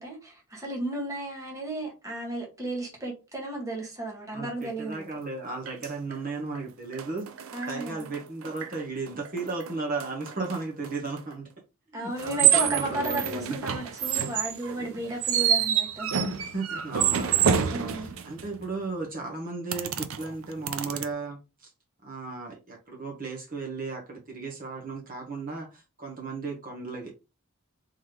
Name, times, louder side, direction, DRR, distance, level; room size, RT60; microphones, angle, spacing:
voice 1, 0.0-5.1 7.5-8.1 11.9-16.1 17.7-18.1, right 2 dB, 15° right, 1.2 m, -34 dB
voice 2, 4.3-7.2 7.7-11.5 11.9-13.6 14.8-14.9 16.2-21.7 22.0-27.1, right 3 dB, 40° right, 1.0 m, -35 dB
sound 1, 4.9-5.0 5.7-6.1 6.5-6.6 6.9-8.8 9.1-11.2 12.2-18.6 19.7-21.0, right 8 dB, 70° right, 0.5 m, -27 dB
3.8 x 3.0 x 3.3 m
head